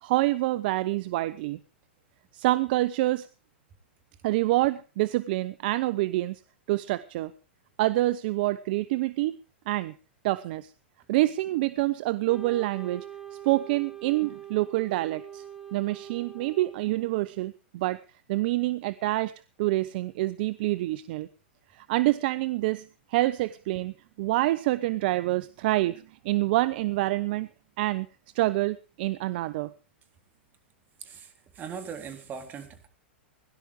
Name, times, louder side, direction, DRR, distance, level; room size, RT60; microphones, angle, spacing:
voice 1, 0.0-1.6 2.3-3.3 4.2-6.4 6.7-7.3 7.8-9.4 9.7-9.9 10.2-10.7 11.1-13.1 13.4-15.4 15.7-18.0 18.3-19.3 19.6-21.3 21.7-27.5 27.8-28.1 28.3-29.7, right 17 dB, 55° right, 16 dB, 0.7 m, -27 dB
Wind instrument woodwind instrument, 12.3-17.4, right 9 dB, 5° right, 3.4 m, -43 dB
voice 2, 31.0-32.9, right 6 dB, 30° right, 7 dB, 3.8 m, -40 dB
17.5 x 11.5 x 5.0 m, 0.35 s
hypercardioid pair, 105°, 6 cm